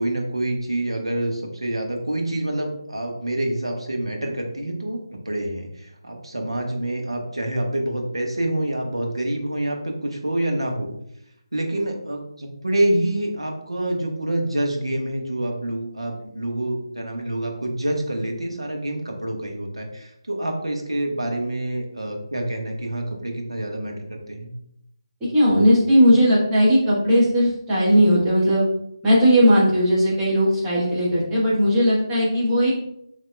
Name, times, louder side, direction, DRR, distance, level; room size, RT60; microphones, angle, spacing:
voice 1, 0.0-10.9 11.5-24.5, right 1 dB, 75° right, 1 dB, 1.1 m, -27 dB
voice 2, 25.3-28.6 29.0-32.7, equal, 10° right, -8 dB, 1.2 m, -17 dB
6.7 x 2.8 x 2.2 m, 0.77 s
figure-of-eight pair, 155°, 3 cm